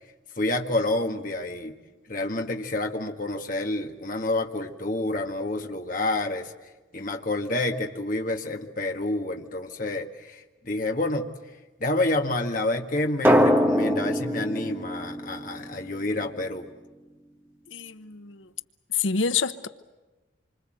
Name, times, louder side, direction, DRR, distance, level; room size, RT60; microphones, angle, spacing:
voice 1, 0.4-1.8 2.1-6.5 6.9-11.3 11.8-16.7, left 2 dB, 45° left, 1.8 m, -28 dB
Drum, 13.2-16.0, equal, 10° right, 2.1 m, -23 dB
voice 2, 17.7-18.5 18.9-19.7, left 5 dB, 75° left, 0.9 m, -27 dB
27.0 x 25.0 x 7.8 m
head